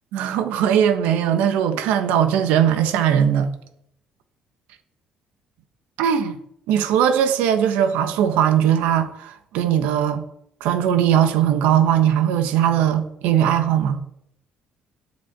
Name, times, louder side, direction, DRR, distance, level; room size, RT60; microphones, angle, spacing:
voice 1, 0.1-3.5 6.0-6.4 6.7-10.2 10.6-14.0, right 9 dB, 90° right, 1.3 m, -19 dB
8.6 x 8.4 x 6.9 m
cardioid pair, 85°, 3 cm